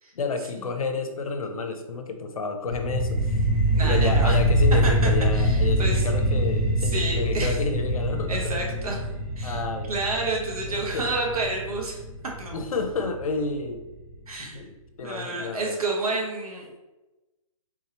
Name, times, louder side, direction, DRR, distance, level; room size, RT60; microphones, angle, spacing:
voice 1, 0.1-3.3 3.7-8.4 9.4-10.0 10.7-11.0 12.5-13.8 14.4-15.8, left 4 dB, 75° left, 6 dB, 0.6 m, -30 dB
sound 1, 2.7-13.7, right 1 dB, 25° right, 0.5 m, -24 dB
voice 2, 3.7-4.4 4.8-6.1 6.8-7.6 8.3-9.0 9.4-9.6 9.9-12.0 12.4-12.6 14.3-14.6 15.0-16.8, right 2 dB, 80° right, -1 dB, 1.2 m, -30 dB
3.6 x 2.9 x 2.9 m, 1.1 s
hypercardioid pair, 160°, 18 cm